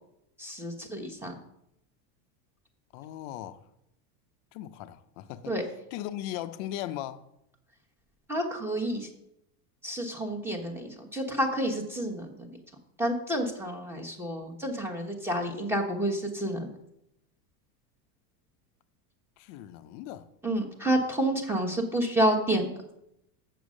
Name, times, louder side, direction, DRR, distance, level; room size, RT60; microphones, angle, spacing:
voice 1, 0.4-1.3 5.5-5.6 8.3-9.1 9.8-12.6 13.0-16.7 20.4-22.7, right 1 dB, 5° right, 1.1 m, -29 dB
voice 2, 2.9-3.6 4.5-5.5 5.9-7.2 19.4-20.3, left 12 dB, 45° left, 0.6 m, -38 dB
7.5 x 7.1 x 6.3 m
supercardioid pair, 150°, 50 cm